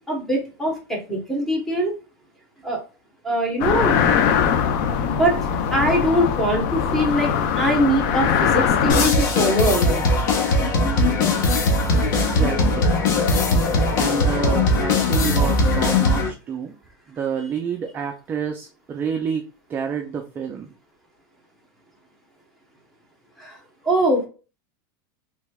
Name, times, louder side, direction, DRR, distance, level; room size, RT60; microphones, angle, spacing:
voice 1, 0.1-1.9 2.6-2.8 3.2-4.0 5.0-5.4 5.7-10.1 23.4-23.6 23.8-24.3, equal, ahead, -1 dB, 1.0 m, -22 dB
sound 1, 3.6-9.1, left 7 dB, 55° left, 0.5 m, -21 dB
sound 2, 8.9-16.3, left 2 dB, 70° left, 1.1 m, -19 dB
voice 2, 12.1-12.9 13.9-16.7 17.2-20.7, right 7 dB, 15° right, 4 dB, 0.3 m, -29 dB
3.4 x 3.2 x 2.2 m, 0.34 s
supercardioid pair, 160°, 11 cm